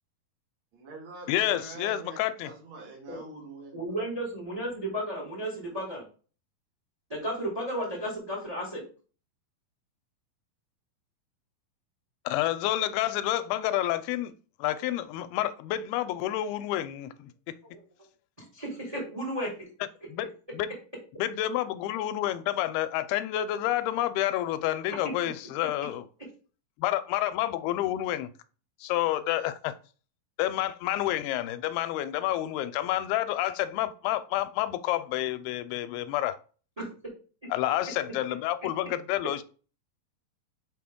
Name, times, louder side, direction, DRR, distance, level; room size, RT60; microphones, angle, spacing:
voice 1, 0.7-4.1, right 3 dB, 40° right, 2.2 m, -45 dB
voice 2, 1.3-2.5 12.3-14.3 14.6-17.6 20.1-20.8 21.2-26.1 26.8-28.3 28.8-29.7 30.4-36.4 37.5-39.4, left 13 dB, 90° left, 2.5 m, -29 dB
voice 3, 3.7-6.1 7.1-8.8 17.7-17.8 18.4-19.7 36.8-36.9, right 1 dB, 25° right, 0.8 m, -33 dB
6.3 x 4.2 x 3.6 m
omnidirectional pair, 4.4 m